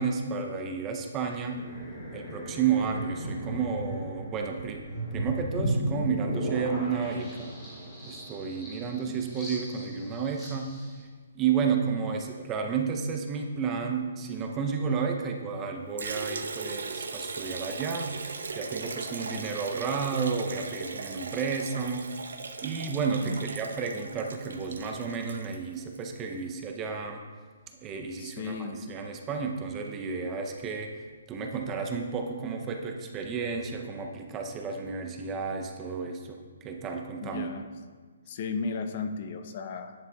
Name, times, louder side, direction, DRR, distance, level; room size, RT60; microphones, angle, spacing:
voice 1, 0.0-1.6 2.1-7.5 8.1-10.7 11.3-18.2 18.5-22.1 22.6-27.2 27.8-31.0 31.3-37.5, right 5 dB, 15° right, 3 dB, 0.5 m, -32 dB
sound 1, 1.4-11.0, right 1 dB, 10° left, 2.2 m, -36 dB
voice 2, 8.8-9.2 23.2-23.5 28.2-28.8 37.2-37.7 38.3-39.9, left 5 dB, 40° left, 8 dB, 0.5 m, -35 dB
Liquid, 16.0-26.1, right 4 dB, 90° right, 0.7 m, -38 dB
10.5 x 6.7 x 2.2 m, 1.5 s
hypercardioid pair, 165°, 0 cm